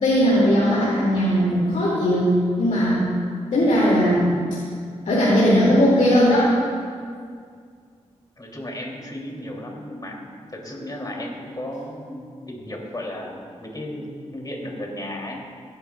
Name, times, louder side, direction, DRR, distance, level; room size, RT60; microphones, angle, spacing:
voice 1, 0.0-3.1 3.5-4.3 5.0-6.5, equal, 80° left, -8 dB, 2.3 m, -18 dB
voice 2, 8.4-10.2 10.5-15.4, left 1 dB, 30° left, -1 dB, 2.7 m, -34 dB
16.0 x 10.5 x 2.3 m, 2.1 s
cardioid pair, 40°, 13 cm